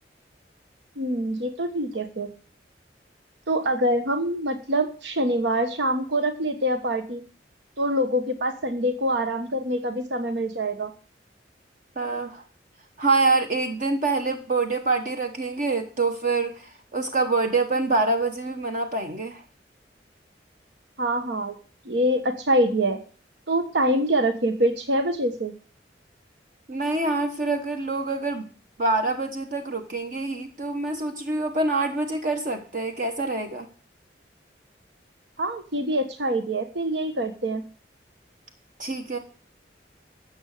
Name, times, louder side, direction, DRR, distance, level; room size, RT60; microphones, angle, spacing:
voice 1, 1.0-2.3 3.5-7.2 7.8-10.9 21.0-21.6 21.8-23.0 23.5-25.5 35.4-37.6, right 1 dB, 80° right, 7 dB, 1.3 m, -25 dB
voice 2, 12.0-12.4 13.0-19.4 26.7-28.5 28.8-33.7 38.8-39.2, right 3 dB, 50° right, 5 dB, 1.2 m, -26 dB
13.5 x 8.1 x 6.6 m, 0.40 s
head